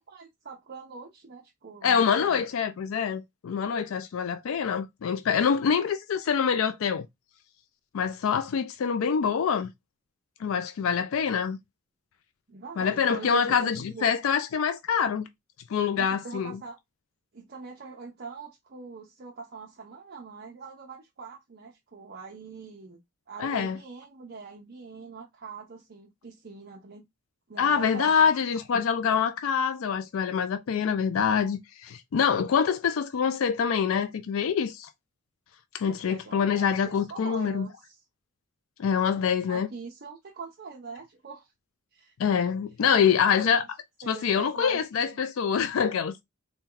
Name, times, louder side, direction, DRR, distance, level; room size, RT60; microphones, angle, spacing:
voice 1, 0.0-2.4 10.4-10.5 12.5-14.1 16.0-16.8 17.3-23.0 23.3-27.1 27.5-28.3 35.9-38.0 39.5-41.5 41.9-42.1 43.2-43.6 44.0-45.3, right 4 dB, 45° right, 0.6 m, -43 dB
voice 2, 1.8-7.1 7.9-9.7 10.4-11.6 12.8-15.3 15.7-16.6 23.4-23.8 27.6-34.9 35.7-37.7 38.8-39.7 42.2-43.6 44.1-46.1, left 7 dB, 70° left, 0.4 m, -25 dB
4.2 x 2.2 x 3.7 m
head